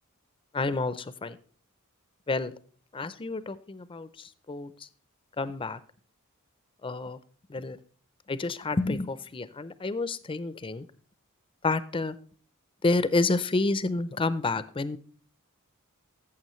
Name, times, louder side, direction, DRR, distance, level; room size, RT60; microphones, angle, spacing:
voice 1, 0.5-1.4 2.3-2.5 2.9-4.7 5.4-5.8 6.8-7.2 7.5-7.8 8.3-10.9 11.6-12.2 12.8-15.0, left 3 dB, 25° left, 15 dB, 0.5 m, -29 dB
14.5 x 7.2 x 3.1 m, 0.43 s
head